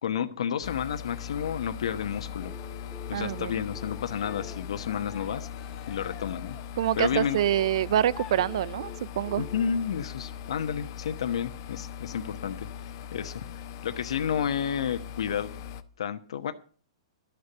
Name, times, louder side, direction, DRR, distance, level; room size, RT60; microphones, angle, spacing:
voice 1, 0.0-2.5 3.1-5.5 5.9-6.6 6.9-7.4 9.4-12.7 13.1-13.4 13.8-15.5 16.0-16.5, left 8 dB, 75° left, 1.1 m, -31 dB
sound 1, 0.6-15.8, left 8 dB, 45° left, 1.0 m, -40 dB
sound 2, 2.4-6.5 7.4-11.0 12.5-12.6, left 4 dB, ahead, 2.2 m, -49 dB
voice 2, 3.1-3.6 6.8-9.5, right 11 dB, 60° right, 0.5 m, -26 dB
Cheering, 3.9-9.4, left 8 dB, 20° left, 1.7 m, -49 dB
12.5 x 6.9 x 8.0 m
hypercardioid pair, 150°, 3 cm